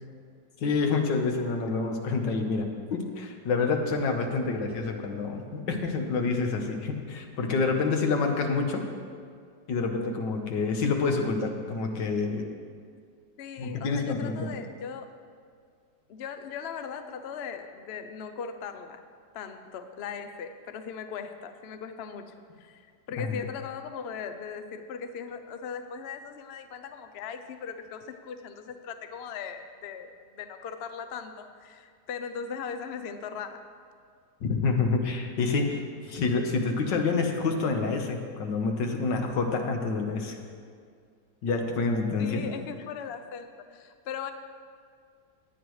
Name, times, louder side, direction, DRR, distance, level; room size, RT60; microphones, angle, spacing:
voice 1, 0.6-8.8 9.7-12.5 13.6-14.6 23.2-23.3 34.4-40.4 41.4-42.5, left 4 dB, 85° left, 3 dB, 1.8 m, -28 dB
voice 2, 13.4-15.1 16.1-19.0 19.3-33.6 42.2-44.3, left 6 dB, 60° left, 7 dB, 0.6 m, -39 dB
16.5 x 10.0 x 3.2 m, 2.1 s
omnidirectional pair, 1.9 m